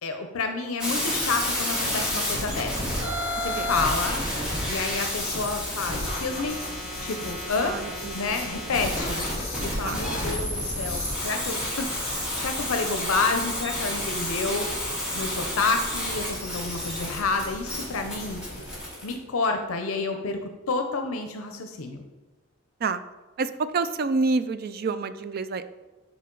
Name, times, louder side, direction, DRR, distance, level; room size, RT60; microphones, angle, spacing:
voice 1, 0.0-3.0 3.4-4.3 4.7-6.6 7.0-7.8 8.1-9.3 9.6-11.9 12.4-18.4 19.0-22.0, left 4 dB, 80° left, 5 dB, 0.6 m, -29 dB
sound 1, 0.8-19.1, left 1 dB, 5° right, 2.0 m, -30 dB
sound 2, 3.4-18.8, left 1 dB, 30° left, 2.5 m, -38 dB
voice 2, 7.6-8.3 9.8-10.0 22.8-23.0 23.4-25.7, right 4 dB, 45° right, 12 dB, 0.4 m, -28 dB
9.7 x 4.2 x 3.8 m, 1.2 s
head